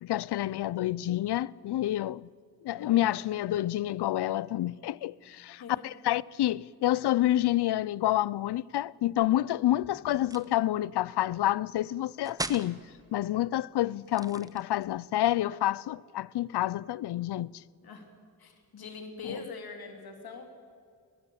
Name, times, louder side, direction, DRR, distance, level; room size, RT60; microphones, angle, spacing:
voice 1, 0.0-2.3 2.6-12.8 13.1-17.5, left 14 dB, 90° left, 0.5 m, -28 dB
voice 2, 2.7-3.4 5.6-6.0 10.0-10.2 17.8-18.1 18.4-20.5, left 4 dB, 65° left, 3.1 m, -44 dB
sound 1, 10.2-10.6 12.2-12.7 14.0-14.9, right 2 dB, 10° right, 0.7 m, -38 dB
22.5 x 19.0 x 8.6 m
wide cardioid pair, 175°, 39 cm